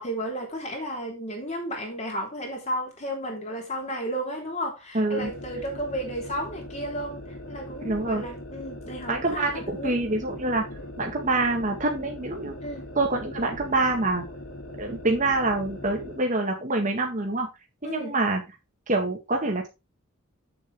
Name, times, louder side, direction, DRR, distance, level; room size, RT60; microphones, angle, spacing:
voice 1, 0.0-10.0 12.6-12.8 17.8-18.1, equal, 35° left, 3.3 m, -33 dB
voice 2, 4.9-5.3 7.8-8.2 9.1-10.6 11.0-12.6 12.9-14.2 14.8-17.5 17.8-18.4 18.9-19.7, right 2 dB, 35° right, 1.7 m, -26 dB
sound 1, 5.2-16.2, left 1 dB, 80° left, 3.4 m, -40 dB
8.1 x 7.1 x 3.5 m
head